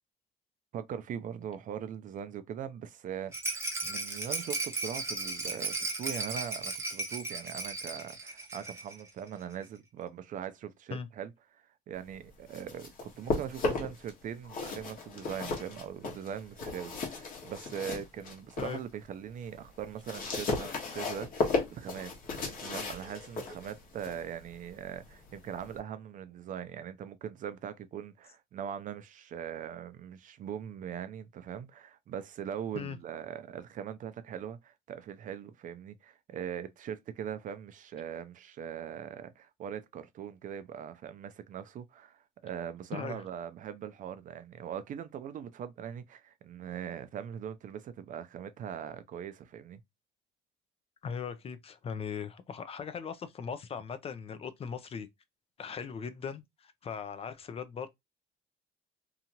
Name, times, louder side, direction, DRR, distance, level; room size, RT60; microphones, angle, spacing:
voice 1, 0.7-49.8, right 9 dB, 50° right, 0.5 m, -41 dB
Rattle, 3.3-9.0 9.3-9.4 9.6-9.7, right 2 dB, 15° right, 0.9 m, -36 dB
sound 1, 12.3-14.1 14.4-18.8 19.2-25.8, left 3 dB, 55° left, 1.1 m, -36 dB
voice 2, 42.9-43.2 51.0-55.1 55.6-57.9, left 6 dB, 35° left, 0.4 m, -39 dB
2.8 x 2.4 x 2.8 m
cardioid pair, 110°, 17 cm